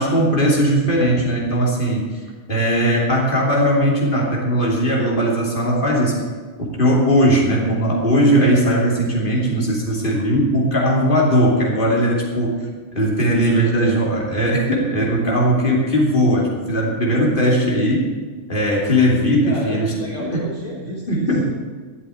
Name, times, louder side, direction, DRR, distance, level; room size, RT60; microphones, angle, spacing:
voice 1, 0.0-6.2 6.6-12.6 12.9-18.1 18.5-20.4 21.1-21.5, equal, 35° left, -2 dB, 3.2 m, -18 dB
voice 2, 19.4-21.5, equal, 55° left, -4 dB, 2.3 m, -31 dB
12.5 x 7.4 x 9.9 m, 1.5 s
omnidirectional pair, 1.6 m